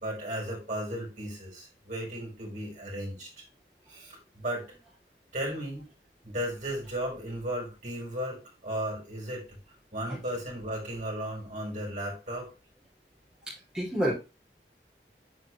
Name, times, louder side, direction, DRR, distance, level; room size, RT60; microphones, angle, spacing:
voice 1, 0.0-3.3 3.9-4.7 5.3-5.8 6.2-9.6 9.9-12.5, right 1 dB, 45° right, -3 dB, 4.5 m, -35 dB
voice 2, 13.5-14.1, equal, 5° right, -7 dB, 2.7 m, -29 dB
7.9 x 4.7 x 3.1 m, 0.27 s
head